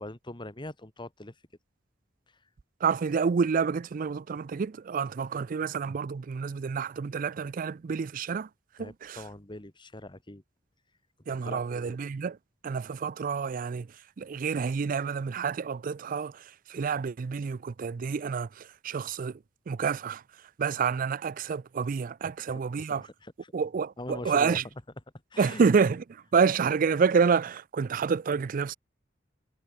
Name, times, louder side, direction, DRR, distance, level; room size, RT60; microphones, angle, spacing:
voice 1, 0.0-1.4 2.3-2.4 8.8-10.4 11.3-12.0 22.2-23.5 24.0-24.6 25.3-25.7, left 1 dB, 25° left, 1.8 m, -42 dB
voice 2, 2.8-8.5 8.8-9.2 11.3-12.4 12.6-13.9 14.2-19.4 19.7-20.2 20.6-23.0 23.5-24.6 25.4-28.7, right 5 dB, 45° right, 0.4 m, -28 dB
head